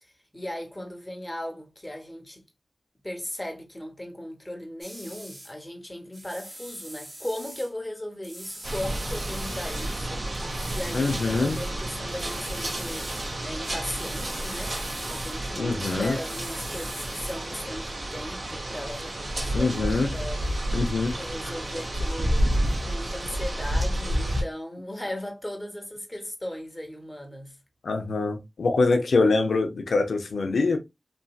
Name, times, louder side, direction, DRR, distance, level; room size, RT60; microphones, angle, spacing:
voice 1, 0.0-2.4 3.0-13.1 13.4-14.7 15.1-20.5 21.2-22.5 22.8-27.6, left 1 dB, 20° left, 1.0 m, -37 dB
sound 1, 4.8-5.5 6.1-7.7 8.2-10.1 10.3-11.7 12.1-13.4 13.8-15.4 15.7-17.4, right 1 dB, 30° right, 0.9 m, -43 dB
sound 2, 8.6-24.4, right 1 dB, 55° right, 0.9 m, -30 dB
voice 2, 10.9-11.6 15.6-16.2 19.5-20.1 20.7-21.1 27.8-30.8, left 3 dB, 85° left, 0.5 m, -24 dB
3.0 x 2.6 x 2.3 m
cardioid pair, 40°, 0 cm